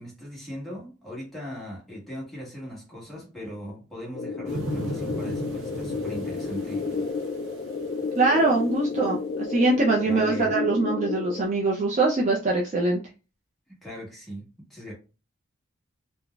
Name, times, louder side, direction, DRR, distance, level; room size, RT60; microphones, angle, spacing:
voice 1, 0.0-7.0 10.0-10.5 13.8-14.9, equal, ahead, 1.1 m, -39 dB
sound 1, 4.1-11.4, left 4 dB, 45° left, 0.3 m, -31 dB
sound 2, 4.5-8.5 9.0-9.1, right 1 dB, 70° right, 0.7 m, -37 dB
voice 2, 8.2-9.2 9.5-13.0, right 3 dB, 35° right, 0.4 m, -23 dB
3.8 x 2.1 x 2.3 m
head